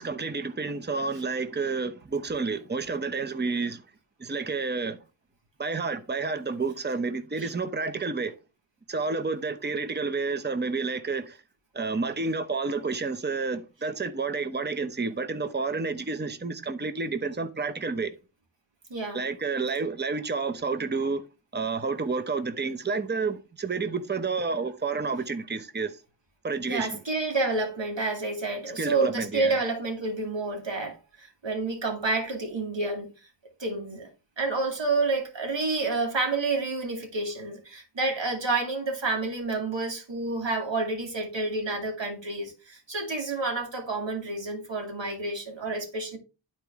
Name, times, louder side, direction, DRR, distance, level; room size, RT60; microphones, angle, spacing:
voice 1, 0.0-3.8 4.2-5.0 5.6-8.3 8.9-11.4 11.7-18.1 19.1-21.2 21.5-25.9 26.4-27.0 28.8-29.6, right 4 dB, 25° right, 0.8 m, -30 dB
voice 2, 18.9-19.2 26.7-33.1 33.6-34.1 34.4-46.2, right 3 dB, 85° right, 2.5 m, -29 dB
11.0 x 4.4 x 3.5 m
wide cardioid pair, 75°, 43 cm